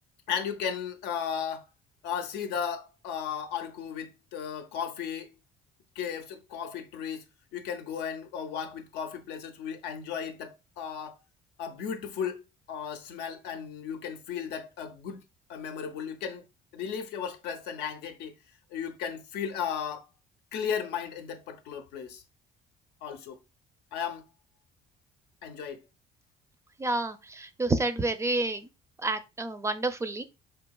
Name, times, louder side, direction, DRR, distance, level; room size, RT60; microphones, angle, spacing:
voice 1, 0.3-1.7 2.0-5.3 6.0-7.2 7.5-11.2 11.6-12.4 12.7-15.2 15.5-16.4 16.7-18.3 18.7-20.1 20.5-22.2 23.0-23.4 23.9-24.3 25.4-25.8, left 7 dB, 85° left, 0.6 m, -35 dB
voice 2, 26.8-28.7 29.0-30.2, right 2 dB, 15° right, 0.4 m, -29 dB
4.5 x 2.7 x 2.2 m
cardioid pair, 110°, 17 cm